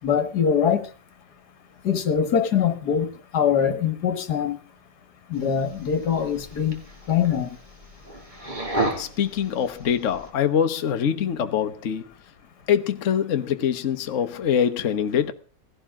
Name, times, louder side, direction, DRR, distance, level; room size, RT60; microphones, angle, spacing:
voice 1, 0.0-0.9 1.8-4.6 5.3-6.8 7.1-7.5, left 8 dB, 65° left, 1.9 m, -23 dB
sound 1, 5.3-10.3, right 2 dB, 25° right, 2.7 m, -33 dB
voice 2, 9.0-12.1 12.7-15.3, left 8 dB, 50° left, 1.2 m, -24 dB
18.5 x 16.0 x 3.7 m
omnidirectional pair, 1.9 m